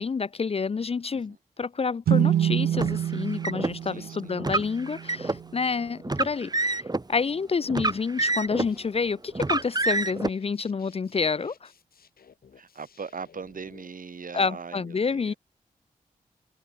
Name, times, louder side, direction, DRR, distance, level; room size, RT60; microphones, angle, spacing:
voice 1, 0.0-11.7 14.3-15.3, left 5 dB, 40° left, 0.5 m, -29 dB
sound 1, 2.1-5.6, right 10 dB, 80° right, 0.5 m, -27 dB
Car, 2.7-3.7 4.4-5.4 6.0-7.0 7.7-8.8 9.4-10.3, right 2 dB, 25° right, 1.4 m, -27 dB
voice 2, 3.9-4.3 12.6-15.4, right 5 dB, 60° right, 5.7 m, -40 dB
sound 2, 8.4-13.9, left 7 dB, 75° left, 7.4 m, -56 dB
supercardioid pair, 40°, 16 cm